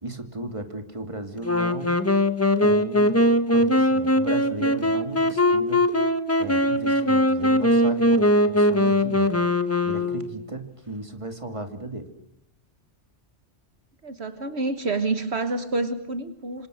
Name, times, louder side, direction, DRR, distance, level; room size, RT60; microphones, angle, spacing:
voice 1, 0.0-1.9 2.6-3.1 3.5-5.8 6.4-9.3 9.8-12.0, right 2 dB, 25° right, 7 dB, 2.8 m, -35 dB
Wind instrument woodwind instrument, 1.4-10.5, left 1 dB, 15° left, 1.3 m, -21 dB
voice 2, 14.0-16.7, right 3 dB, 65° right, 9 dB, 1.6 m, -28 dB
27.5 x 26.0 x 6.5 m, 0.74 s
omnidirectional pair, 1.2 m